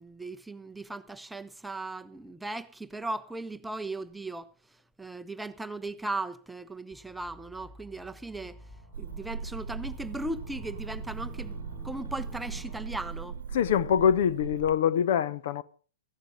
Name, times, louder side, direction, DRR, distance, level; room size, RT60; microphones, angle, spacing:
voice 1, 0.0-4.5 5.0-8.6 9.0-13.5, right 2 dB, 5° right, 0.7 m, -37 dB
sound 1, 6.9-13.2, left 3 dB, 25° left, 5.7 m, -50 dB
sound 2, 8.9-14.8, right 5 dB, 65° right, 1.0 m, -39 dB
voice 2, 13.5-15.6, left 8 dB, 50° left, 0.8 m, -24 dB
17.5 x 15.0 x 5.0 m
figure-of-eight pair, 105°, 0 cm